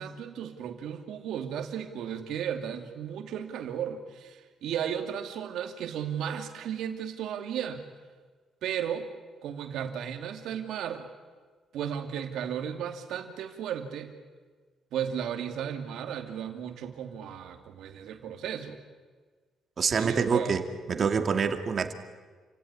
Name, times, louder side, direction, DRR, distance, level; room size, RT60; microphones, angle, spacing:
voice 1, 0.0-7.8 8.6-9.1 9.4-11.1 11.7-14.1 14.9-18.8 19.9-20.6, right 9 dB, 80° right, 7 dB, 2.6 m, -35 dB
voice 2, 19.8-21.9, right 5 dB, 45° right, 8 dB, 2.4 m, -26 dB
29.5 x 17.0 x 9.9 m, 1.5 s
cardioid pair, 90°, 0 cm